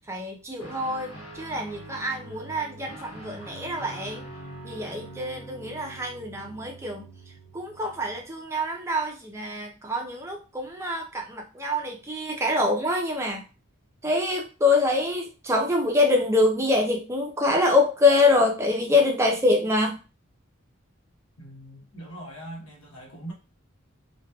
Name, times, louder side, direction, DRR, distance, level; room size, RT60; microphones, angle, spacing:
voice 1, 0.1-4.2 4.6-7.1 7.5-13.4 14.0-20.0, left 2 dB, 15° right, 2 dB, 0.4 m, -25 dB
Guitar, 0.6-8.3, right 1 dB, 55° left, 1.4 m, -43 dB
voice 2, 21.4-23.3, right 1 dB, 80° left, -1 dB, 1.0 m, -41 dB
2.9 x 2.2 x 2.2 m, 0.32 s
head